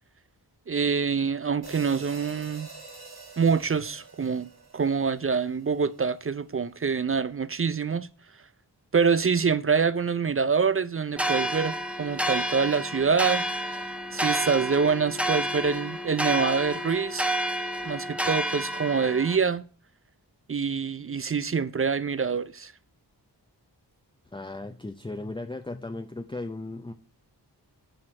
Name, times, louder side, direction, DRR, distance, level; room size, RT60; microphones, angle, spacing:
voice 1, 0.7-2.7 3.4-4.5 4.7-8.1 8.9-13.4 14.1-17.3 17.8-19.6 20.5-22.7, right 5 dB, 35° right, 0.4 m, -25 dB
sound 1, 1.6-6.0, right 4 dB, 65° right, 3.2 m, -46 dB
sound 2, 11.2-19.4, right 1 dB, 5° right, 0.9 m, -30 dB
voice 2, 24.3-26.9, left 2 dB, 10° left, 0.6 m, -36 dB
7.4 x 4.5 x 6.3 m
cardioid pair, 50°, 41 cm